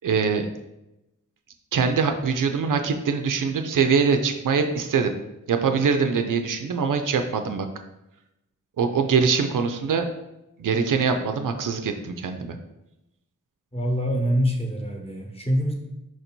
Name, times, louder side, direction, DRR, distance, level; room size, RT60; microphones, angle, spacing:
voice 1, 0.0-0.5 1.7-5.1 5.5-7.7 8.8-10.0 10.6-12.6, right 5 dB, 70° right, 7 dB, 0.5 m, -23 dB
voice 2, 13.7-15.7, equal, 20° left, 0 dB, 1.0 m, -25 dB
4.6 x 2.7 x 4.4 m, 0.93 s
cardioid pair, 60°, 33 cm